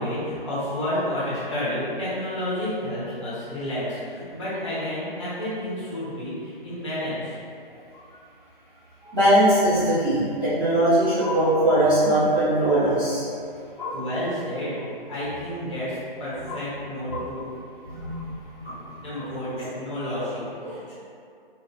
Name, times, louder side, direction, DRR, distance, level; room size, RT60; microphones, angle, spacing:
voice 1, 0.0-7.4 13.6-14.8 15.1-17.4 18.6-20.9, left 1 dB, 30° left, -11 dB, 0.9 m, -30 dB
voice 2, 9.1-13.2 13.8-14.0 17.1-17.2 17.8-18.3 18.6-18.8 19.2-19.3 20.2-20.3 20.6-20.7, right 1 dB, 5° right, -20 dB, 0.9 m, -21 dB
2.8 x 2.1 x 2.3 m, 2.4 s
figure-of-eight pair, 145°, 29 cm